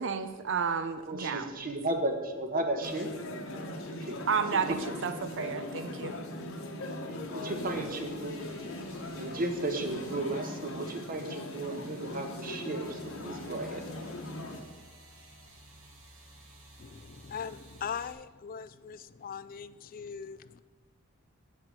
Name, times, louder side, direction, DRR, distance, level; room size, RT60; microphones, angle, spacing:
voice 1, 0.0-1.5 4.3-6.2, right 6 dB, 60° right, 10 dB, 0.6 m, -31 dB
voice 2, 1.1-3.1 3.9-4.2 4.5-4.8 6.9-8.4 9.1-13.8, right 2 dB, 45° right, 5 dB, 1.3 m, -34 dB
sound 1, 2.8-14.6, left 1 dB, 75° left, 1.4 m, -40 dB
sound 2, 7.5-18.1, right 2 dB, 85° right, 2.3 m, -55 dB
voice 3, 16.8-20.6, left 7 dB, 45° left, 15 dB, 0.4 m, -40 dB
8.0 x 7.5 x 7.5 m, 1.3 s
head